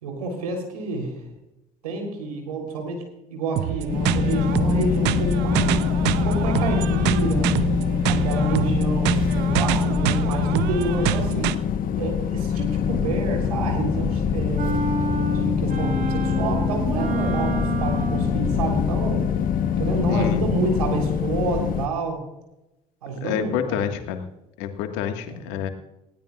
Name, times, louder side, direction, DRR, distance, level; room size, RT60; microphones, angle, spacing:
voice 1, 0.0-1.2 1.8-3.0 3.3-5.8 6.2-7.6 8.1-11.5 12.0-14.7 15.3-19.2 19.8-22.2 23.0-23.9 25.3-25.6, right 3 dB, 85° right, 3 dB, 3.5 m, -28 dB
sound 1, 3.6-11.6, right 15 dB, 65° right, 0.6 m, -26 dB
sound 2, 3.9-21.9, left 7 dB, 45° left, 1.1 m, -24 dB
sound 3, 14.6-18.5, right 4 dB, 45° right, 2.4 m, -29 dB
voice 2, 20.1-20.4 23.2-24.2 24.6-25.7, left 9 dB, 70° left, 6 dB, 1.7 m, -28 dB
19.5 x 16.5 x 2.4 m, 0.91 s
hypercardioid pair, 60°, 19 cm